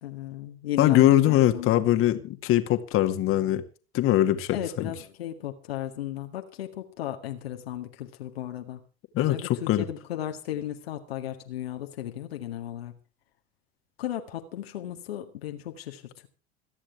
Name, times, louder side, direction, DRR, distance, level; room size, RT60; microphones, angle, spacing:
voice 1, 0.0-1.9 4.5-8.8 9.2-12.9 14.0-16.3, left 12 dB, 70° left, 1.9 m, -35 dB
voice 2, 0.8-3.6 3.9-4.9 9.1-9.4 9.7-9.8, left 13 dB, 45° left, 2.1 m, -22 dB
27.0 x 9.9 x 3.4 m
figure-of-eight pair, 70°, 32 cm